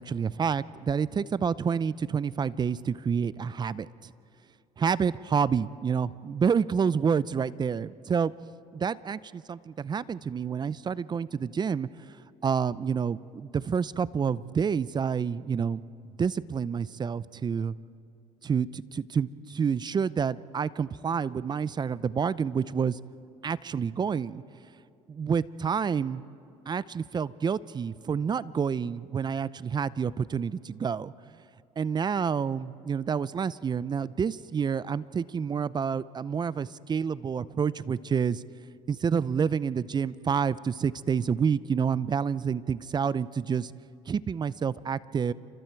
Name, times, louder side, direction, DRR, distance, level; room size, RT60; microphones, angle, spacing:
voice 1, 0.0-4.1 4.8-8.3 8.7-11.9 12.4-15.8 16.2-17.7 18.4-23.0 23.4-24.4 25.1-26.2 26.7-31.1 31.8-38.4 38.9-43.7 44.1-45.3, right 6 dB, 30° right, 18 dB, 0.5 m, -28 dB
29.0 x 25.5 x 4.6 m, 2.5 s
supercardioid pair, 80°, 14 cm